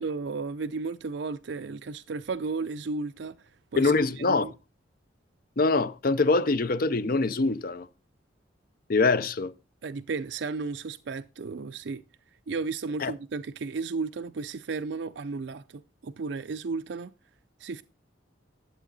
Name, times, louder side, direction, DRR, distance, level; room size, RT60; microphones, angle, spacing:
voice 1, 0.0-3.4 3.7-3.9 4.2-4.5 9.8-12.0 12.5-17.1 17.6-17.8, right 4 dB, 65° right, 0.5 m, -34 dB
voice 2, 3.8-4.5 5.6-7.9 8.9-9.5 13.0-13.1, left 3 dB, 50° left, 0.6 m, -24 dB
11.0 x 8.0 x 4.0 m
head